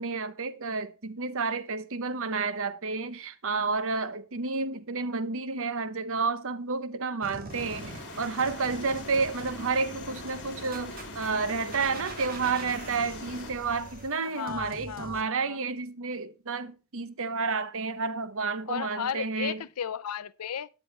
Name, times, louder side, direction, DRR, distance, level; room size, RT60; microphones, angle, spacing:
voice 1, 0.0-19.6, right 4 dB, 65° right, 1.0 m, -30 dB
sound 1, 7.2-15.2, right 2 dB, 40° right, 2.3 m, -45 dB
sound 2, 7.5-13.5, left 2 dB, 55° left, 3.8 m, -43 dB
sound 3, 7.8-14.1, left 1 dB, 35° left, 3.0 m, -49 dB
voice 2, 14.3-15.6 18.7-20.7, left 8 dB, 85° left, 0.6 m, -35 dB
13.0 x 9.5 x 3.3 m
head